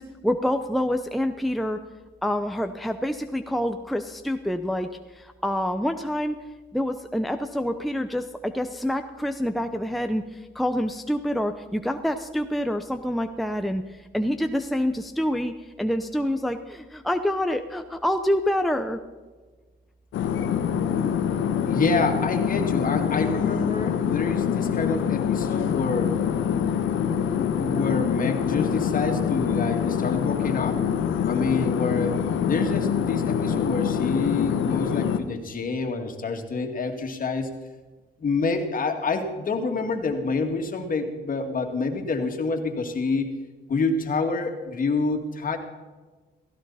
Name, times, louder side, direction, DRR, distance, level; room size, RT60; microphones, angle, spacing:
voice 1, 0.0-1.8 2.2-6.4 6.7-19.0, equal, ahead, 6 dB, 0.8 m, -27 dB
sound 1, 20.1-35.2, left 8 dB, 80° left, 1.1 m, -25 dB
voice 2, 21.7-26.2 27.3-30.8 31.3-32.2 32.4-37.5 38.2-43.3 43.7-45.6, left 3 dB, 45° left, 5 dB, 2.4 m, -27 dB
16.5 x 16.0 x 4.2 m, 1.3 s
cardioid pair, 90°, 20 cm